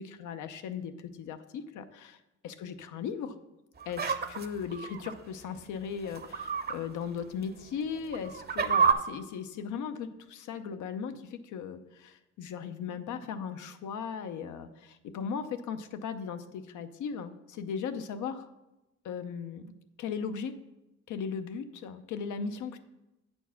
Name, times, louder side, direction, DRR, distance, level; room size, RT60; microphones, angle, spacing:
voice 1, 0.0-3.4 3.9-18.5 19.0-20.5 21.1-22.8, left 6 dB, 80° left, 9 dB, 0.7 m, -37 dB
sound 1, 3.8-5.1 6.1-6.7 7.2-7.3 8.0-8.9, right 6 dB, 35° right, 0.7 m, -28 dB
8.3 x 4.4 x 5.7 m, 0.98 s
cardioid pair, 90°, 30 cm